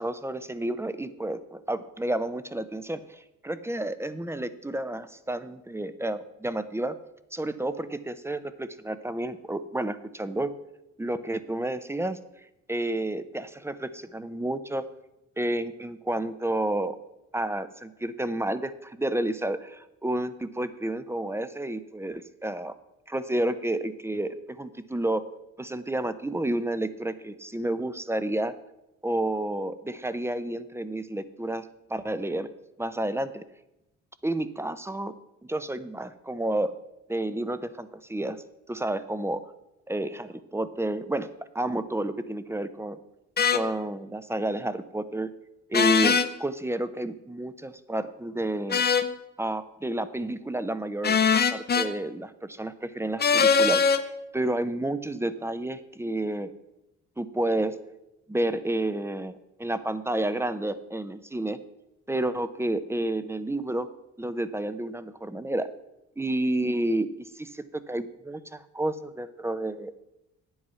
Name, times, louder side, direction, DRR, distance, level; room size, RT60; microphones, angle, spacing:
voice 1, 0.0-7.0 7.3-10.5 11.0-12.2 12.7-14.8 15.4-17.0 17.3-22.7 23.1-25.3 25.6-28.5 29.0-32.5 32.8-33.4 34.2-35.2 35.4-36.7 37.1-39.5 39.9-41.3 41.5-43.0 43.5-45.3 45.7-48.8 49.4-51.2 51.5-53.8 54.3-56.5 57.2-57.8 58.3-61.6 62.1-63.9 64.2-65.7 66.2-70.0, right 1 dB, 10° right, 13 dB, 0.6 m, -30 dB
sound 1, 43.4-43.6 45.7-46.3 48.7-49.1 51.0-51.9 53.2-54.0, left 6 dB, 35° left, 0.7 m, -21 dB
9.7 x 7.9 x 5.6 m, 0.91 s
cardioid pair, 90°, 30 cm